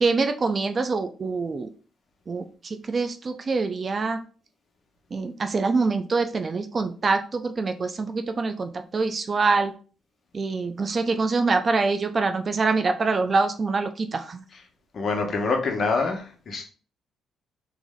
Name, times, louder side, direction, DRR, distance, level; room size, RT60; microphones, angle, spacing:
voice 1, 0.0-1.7 2.3-2.4 2.9-4.2 5.1-9.7 10.3-14.4, right 4 dB, 40° right, 7 dB, 0.5 m, -25 dB
voice 2, 14.9-16.7, left 4 dB, 50° left, 3 dB, 1.1 m, -25 dB
3.4 x 3.1 x 3.7 m, 0.39 s
cardioid pair, 90°, 0 cm